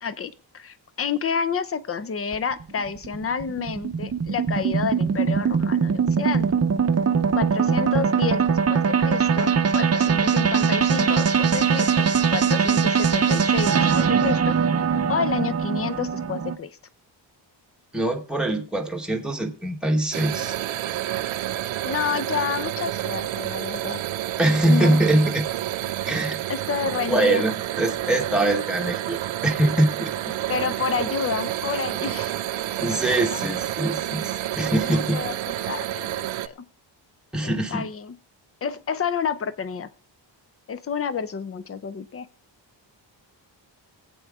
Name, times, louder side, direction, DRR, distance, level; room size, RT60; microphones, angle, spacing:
voice 1, 0.0-6.5 7.3-16.8 21.8-24.0 24.6-25.0 26.5-27.4 30.5-32.4 34.8-35.4 35.7-36.7 37.4-38.2 38.6-39.9 40.7-42.3, left 6 dB, 30° left, 14 dB, 0.6 m, -29 dB
sound 1, 2.3-16.6, right 6 dB, 35° right, 0.7 m, -21 dB
voice 2, 17.9-20.5 24.4-25.5 26.1-26.4 27.1-29.2 29.4-30.1 32.8-35.2 35.6-35.7 37.3-37.9, right 1 dB, ahead, 2 dB, 1.1 m, -23 dB
sound 2, 20.1-36.5, right 13 dB, 80° right, 0.7 m, -29 dB
22.5 x 8.5 x 3.5 m, 0.40 s
wide cardioid pair, 180°, 46 cm